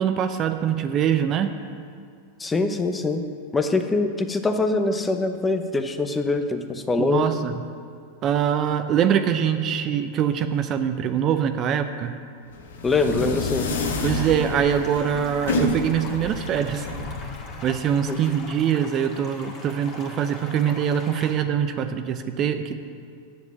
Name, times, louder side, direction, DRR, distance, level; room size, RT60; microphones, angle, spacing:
voice 1, 0.0-1.5 7.0-7.6 8.2-12.2 14.0-16.9 17.6-22.8, right 8 dB, 35° right, 9 dB, 0.6 m, -23 dB
voice 2, 2.4-3.2 3.5-7.3 12.8-13.7 18.0-18.2, left 3 dB, 15° left, 7 dB, 0.9 m, -23 dB
sound 1, 12.5-18.3, left 2 dB, 70° left, 1.1 m, -29 dB
sound 2, 13.7-21.3, left 2 dB, 40° left, 1.9 m, -42 dB
8.0 x 7.1 x 8.5 m, 2.2 s
hypercardioid pair, 95°, 0 cm